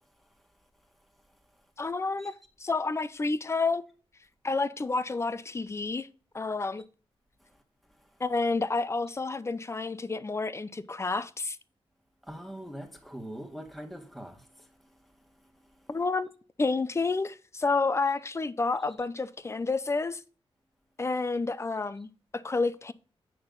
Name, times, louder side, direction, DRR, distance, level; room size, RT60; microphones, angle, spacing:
voice 1, 1.8-2.3 2.6-3.8 4.4-6.1 6.3-6.8 8.2-11.6 15.9-16.3 16.6-20.2 21.0-22.9, left 3 dB, 25° left, 0.6 m, -29 dB
voice 2, 12.3-14.4, equal, ahead, 1.7 m, -42 dB
8.9 x 6.2 x 3.9 m
wide cardioid pair, 115°, 10 cm